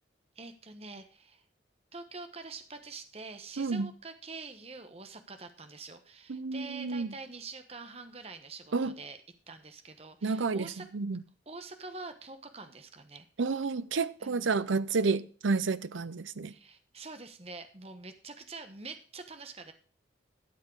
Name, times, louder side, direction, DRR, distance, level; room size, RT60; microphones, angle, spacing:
voice 1, 0.3-1.4 1.9-9.2 9.5-10.8 11.5-13.3 14.2-14.7 16.5-19.7, right 3 dB, 30° right, 1.1 m, -46 dB
voice 2, 3.6-3.9 6.3-7.1 8.7-8.9 10.2-11.2 13.4-16.5, right 4 dB, 85° right, 0.6 m, -30 dB
12.5 x 7.5 x 4.7 m
head